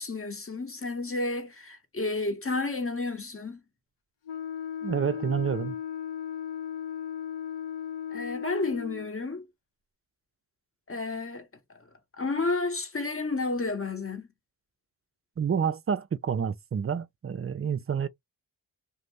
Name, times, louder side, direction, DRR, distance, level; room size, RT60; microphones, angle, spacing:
voice 1, 0.0-3.6 8.1-9.5 10.9-11.5 12.2-14.3, left 3 dB, 30° left, 0.9 m, -31 dB
Wind instrument woodwind instrument, 4.3-9.1, left 9 dB, 80° left, 0.7 m, -36 dB
voice 2, 4.8-5.7 15.4-18.1, right 7 dB, 35° right, 0.4 m, -29 dB
2.6 x 2.1 x 3.1 m
cardioid pair, 40°, 44 cm